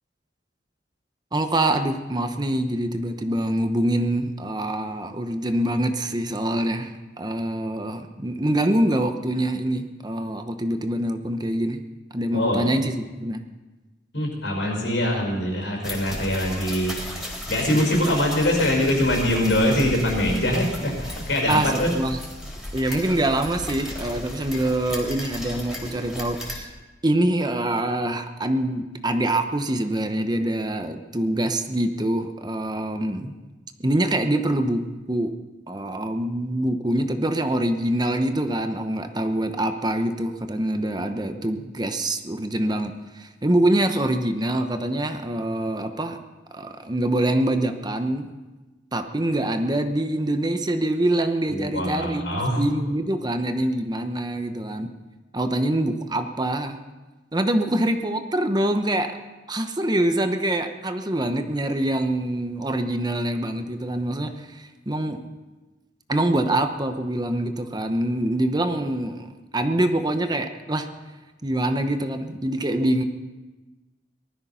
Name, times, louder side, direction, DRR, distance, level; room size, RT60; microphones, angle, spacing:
voice 1, 1.3-11.8 12.1-13.4 21.5-22.2 22.7-26.7 27.0-33.3 33.8-35.3 35.7-46.2 46.5-48.3 48.9-54.9 55.3-56.8 57.3-59.2 59.5-65.2 66.1-70.9 71.4-73.0, right 1 dB, 25° right, 7 dB, 0.9 m, -25 dB
voice 2, 12.3-12.7 14.1-17.0 17.5-21.9 51.5-52.6, left 1 dB, 80° left, 1 dB, 5.1 m, -23 dB
sound 1, 15.8-26.6, equal, ahead, 3.7 m, -35 dB
19.5 x 12.5 x 5.7 m, 1.2 s
head